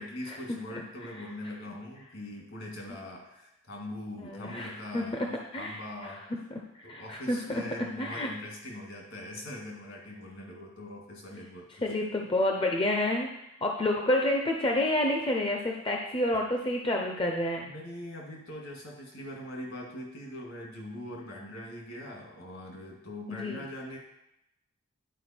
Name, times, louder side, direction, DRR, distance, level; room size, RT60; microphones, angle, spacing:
voice 1, 0.0-5.2 5.5-6.2 6.8-12.1 17.6-24.0, left 1 dB, 65° left, -1 dB, 2.2 m, -42 dB
voice 2, 4.2-8.3 11.8-13.3 13.6-17.7 23.3-23.6, left 1 dB, 25° left, 1 dB, 0.5 m, -29 dB
10.0 x 4.7 x 4.4 m, 0.85 s
head